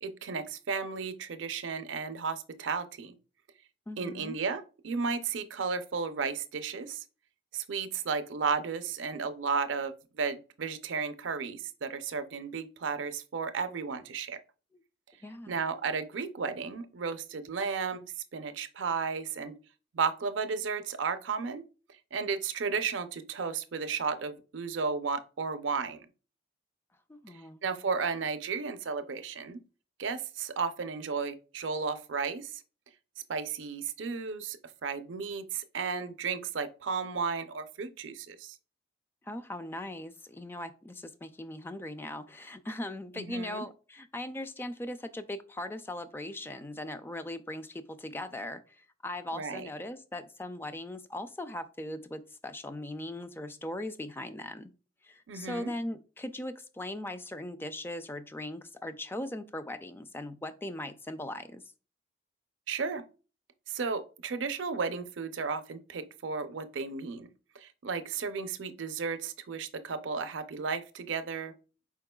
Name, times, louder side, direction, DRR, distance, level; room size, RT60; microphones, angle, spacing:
voice 1, 0.0-3.1 4.0-7.0 7.5-14.4 15.5-19.5 19.9-21.6 22.1-26.1 27.6-29.6 30.0-32.5 33.3-38.6 43.2-43.6 49.3-49.7 55.3-55.7 62.7-63.0 63.7-67.3 67.6-71.5, right 5 dB, 85° right, 0.5 m, -34 dB
voice 2, 3.9-4.4 14.7-14.8 15.2-15.6 27.1-27.6 39.2-54.7 55.0-61.6, left 1 dB, 10° left, 0.3 m, -39 dB
4.7 x 4.3 x 2.2 m
head